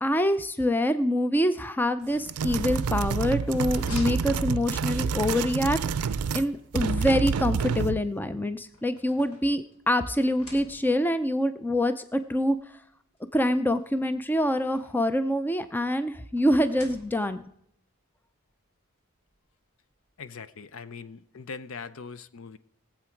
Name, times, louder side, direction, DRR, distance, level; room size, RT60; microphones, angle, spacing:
voice 1, 0.0-5.8 6.3-12.6 13.3-17.4, left 1 dB, 10° left, 0.4 m, -25 dB
sound 1, 2.0-5.2 6.5-7.6 8.5-9.9 10.2-11.2 12.1-12.2 12.5-12.6 13.8-15.2 16.4-17.5, equal, 90° left, 3.4 m, -45 dB
sound 2, 2.3-6.5 6.7-8.1, right 5 dB, 90° right, 0.5 m, -28 dB
voice 2, 20.2-22.6, left 5 dB, 65° left, 0.6 m, -41 dB
21.5 x 7.7 x 4.5 m
head